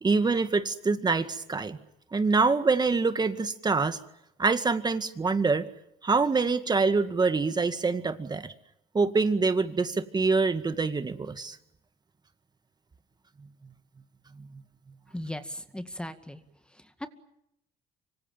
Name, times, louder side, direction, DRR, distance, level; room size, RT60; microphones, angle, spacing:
voice 1, 0.0-1.8 2.1-4.0 4.4-5.7 6.0-8.5 8.9-11.6, right 4 dB, 25° right, 10 dB, 2.0 m, -25 dB
voice 2, 15.1-16.4 16.7-17.1, left 1 dB, 5° left, 9 dB, 2.1 m, -38 dB
25.5 x 25.5 x 7.5 m, 0.80 s
cardioid pair, 110°, 17 cm